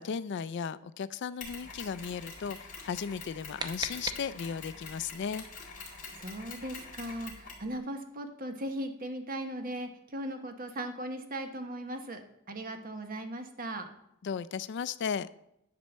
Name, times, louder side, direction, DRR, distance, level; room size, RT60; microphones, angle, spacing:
voice 1, 0.0-5.4 14.2-15.3, left 6 dB, 55° left, 17 dB, 0.3 m, -35 dB
Mechanisms, 1.4-7.7, left 4 dB, 35° left, 2.7 m, -46 dB
sound 1, 3.1-4.8, right 3 dB, 20° right, 0.7 m, -40 dB
voice 2, 5.9-13.9, right 1 dB, 40° right, 6 dB, 1.1 m, -38 dB
10.5 x 4.4 x 7.2 m, 0.79 s
head